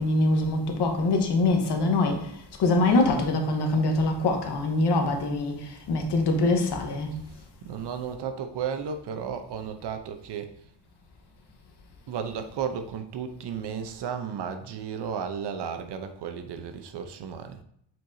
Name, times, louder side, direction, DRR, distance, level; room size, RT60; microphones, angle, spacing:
voice 1, 0.0-7.2, left 2 dB, 70° left, 1.2 m, -24 dB
voice 2, 7.7-10.5 12.1-17.6, right 7 dB, 70° right, 0.8 m, -34 dB
7.5 x 4.6 x 2.7 m
cardioid pair, 145°, 42 cm